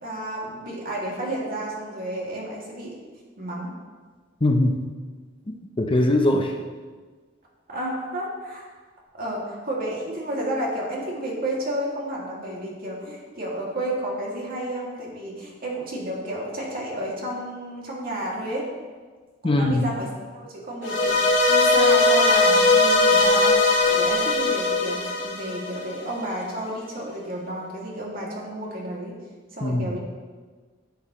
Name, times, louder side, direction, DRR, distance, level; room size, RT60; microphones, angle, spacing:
voice 1, 0.0-2.9 3.4-3.7 7.7-8.7 9.1-18.7 19.4-20.1 20.3-29.1 29.5-30.0, right 1 dB, 50° right, -4 dB, 2.4 m, -31 dB
voice 2, 4.4-4.9 5.5-6.5 19.4-19.8 29.6-29.9, left 1 dB, 25° left, 3 dB, 0.6 m, -21 dB
sound 1, 20.8-26.1, left 2 dB, 65° left, 2.1 m, -19 dB
11.5 x 7.6 x 3.1 m, 1.4 s
head